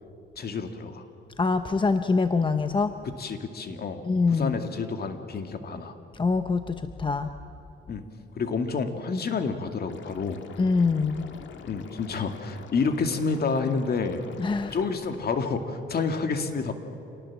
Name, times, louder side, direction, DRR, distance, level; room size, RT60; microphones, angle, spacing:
voice 1, 0.4-1.1 3.2-5.9 7.9-8.0 8.3-10.4 11.7-14.2 14.7-16.7, left 4 dB, 50° left, 7 dB, 2.2 m, -29 dB
voice 2, 1.4-2.9 4.0-4.6 6.1-7.3 10.6-11.2 14.4-14.8, left 4 dB, 25° left, 9 dB, 0.8 m, -24 dB
Liquid, 9.9-14.9, left 5 dB, 70° left, 2.0 m, -45 dB
26.5 x 18.5 x 7.4 m, 2.9 s
cardioid pair, 90°, 20 cm